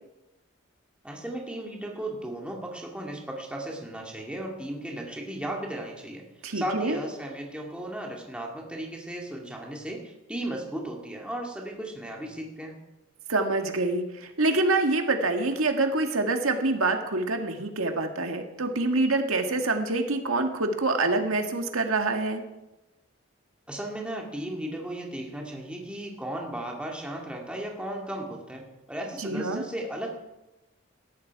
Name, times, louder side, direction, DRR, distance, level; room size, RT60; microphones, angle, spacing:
voice 1, 1.0-6.2 6.5-12.8 23.7-30.1, right 1 dB, 5° right, -1 dB, 2.3 m, -35 dB
voice 2, 6.4-7.0 13.3-22.4 29.2-29.6, right 2 dB, 90° right, 4 dB, 1.8 m, -26 dB
18.5 x 13.5 x 4.7 m, 1.0 s
head